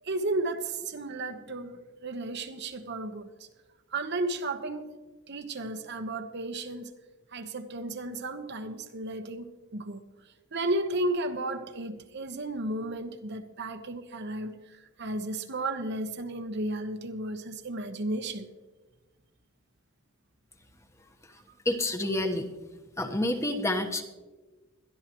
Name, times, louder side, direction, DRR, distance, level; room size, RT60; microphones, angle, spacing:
voice 1, 0.0-3.3 3.9-5.0 5.3-6.9 7.3-10.0 10.5-18.5, right 2 dB, 60° right, 1.1 m, -33 dB
voice 2, 21.6-22.5 23.0-24.0, left 1 dB, 15° left, 1.1 m, -28 dB
21.5 x 13.0 x 3.0 m
head